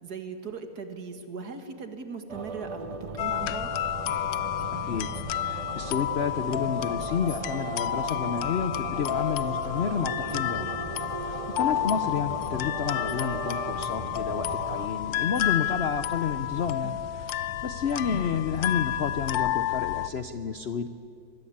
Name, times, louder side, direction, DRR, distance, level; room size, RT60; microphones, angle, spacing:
voice 1, 0.0-3.7 16.8-17.0 18.6-18.8, right 5 dB, 60° right, 7 dB, 2.3 m, -39 dB
sound 1, 2.3-14.9, right 4 dB, 45° right, 0.4 m, -37 dB
sound 2, 3.2-20.1, left 12 dB, 90° left, 1.4 m, -31 dB
voice 2, 5.4-10.7 11.2-20.9, left 6 dB, 55° left, 10 dB, 0.7 m, -30 dB
25.5 x 20.0 x 8.6 m, 2.7 s
omnidirectional pair, 1.9 m